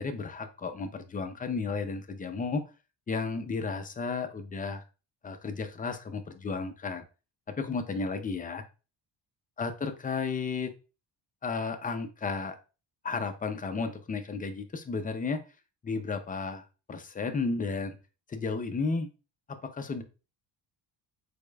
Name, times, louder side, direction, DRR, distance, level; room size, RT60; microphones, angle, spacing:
voice 1, 0.0-2.6 3.1-4.8 5.2-7.0 7.6-8.6 9.6-10.7 11.4-12.6 13.0-15.4 15.8-18.0 18.3-19.1 19.5-20.0, left 4 dB, 20° left, 7 dB, 0.4 m, -33 dB
5.0 x 4.2 x 2.2 m, 0.32 s
cardioid pair, 160°, 45 cm